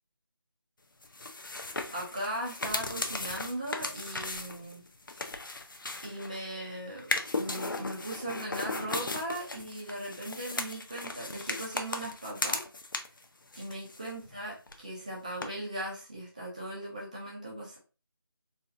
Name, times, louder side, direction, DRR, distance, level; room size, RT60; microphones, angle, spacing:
sound 1, 1.0-6.5 7.0-13.2 13.5-14.4 14.7-14.8 15.4-15.5, left 3 dB, 55° left, 0.6 m, -36 dB
voice 1, 1.7-4.9 6.0-12.6 13.5-17.8, right 1 dB, 20° right, -3 dB, 0.7 m, -38 dB
4.1 x 2.4 x 2.7 m, 0.33 s
figure-of-eight pair, 175°, 13 cm